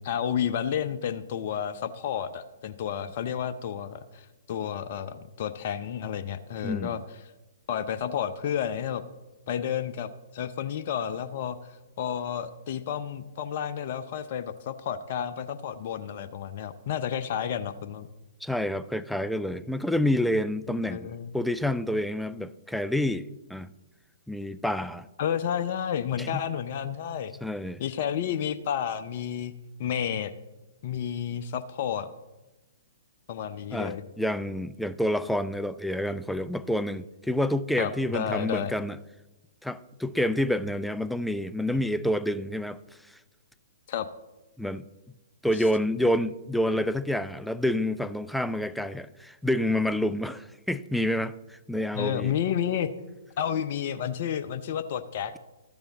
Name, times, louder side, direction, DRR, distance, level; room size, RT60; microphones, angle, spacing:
voice 1, 0.0-7.0 7.7-9.0 9.5-11.6 12.0-18.1 20.7-21.3 25.2-27.3 27.8-29.5 29.8-30.3 30.8-32.1 33.3-34.0 37.8-38.7 43.9-44.1 51.9-52.9 53.4-55.3, left 9 dB, 50° left, 0.6 m, -31 dB
voice 2, 6.6-7.0 18.4-23.7 24.3-25.1 26.2-26.4 27.4-27.8 33.7-39.0 39.6-42.8 43.1-43.2 44.6-44.9 45.4-52.3, left 1 dB, ahead, 0.4 m, -28 dB
13.5 x 6.9 x 3.9 m
figure-of-eight pair, 120°, 0 cm